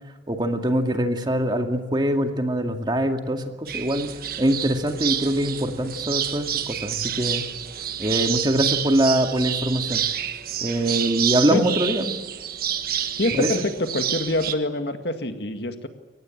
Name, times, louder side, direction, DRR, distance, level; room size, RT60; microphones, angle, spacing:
voice 1, 0.3-4.1 4.4-7.4 8.0-10.0 10.6-12.2 13.3-13.7, right 1 dB, 25° right, 5 dB, 2.2 m, -23 dB
sound 1, 3.7-14.6, right 9 dB, 55° right, 1.4 m, -28 dB
voice 2, 13.2-15.9, left 1 dB, 65° left, 7 dB, 2.0 m, -25 dB
24.0 x 19.0 x 8.8 m, 1.3 s
head